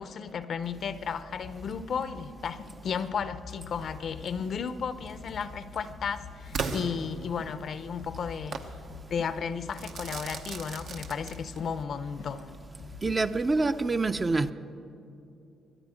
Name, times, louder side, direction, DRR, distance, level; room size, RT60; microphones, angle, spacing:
voice 1, 0.0-8.7 9.1-12.6, left 6 dB, 60° left, 0.6 m, -34 dB
sound 1, 1.4-13.3, left 6 dB, 85° left, 1.3 m, -47 dB
Crackle / Fireworks, 6.5-7.7 8.5-8.8 9.7-11.7, right 5 dB, 75° right, 1.0 m, -36 dB
voice 2, 13.0-14.5, right 3 dB, 25° right, 0.5 m, -26 dB
22.0 x 10.5 x 5.0 m
cardioid pair, 90°, 0 cm